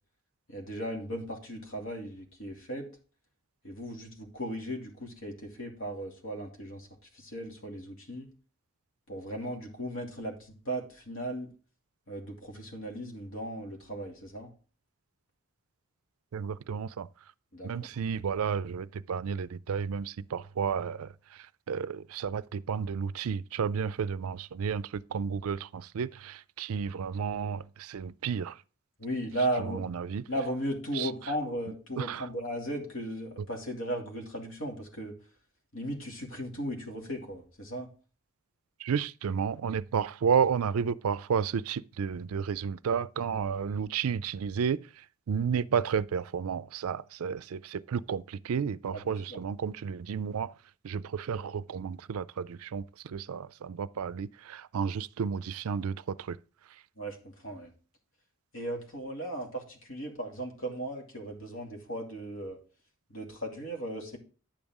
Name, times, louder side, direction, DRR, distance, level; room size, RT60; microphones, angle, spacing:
voice 1, 0.5-2.9 3.6-6.9 7.1-8.3 9.1-11.5 12.1-14.5 17.5-17.9 29.0-29.8 30.3-35.1 35.7-37.9 48.9-49.4 57.0-57.7 58.5-62.6 63.1-64.2, right 1 dB, 65° left, 2.5 m, -36 dB
voice 2, 16.3-17.1 17.6-28.6 29.6-30.2 30.9-31.1 32.0-32.3 38.8-50.5 50.8-56.4 56.7-56.8, right 6 dB, 80° right, 0.4 m, -32 dB
10.0 x 7.1 x 3.6 m
head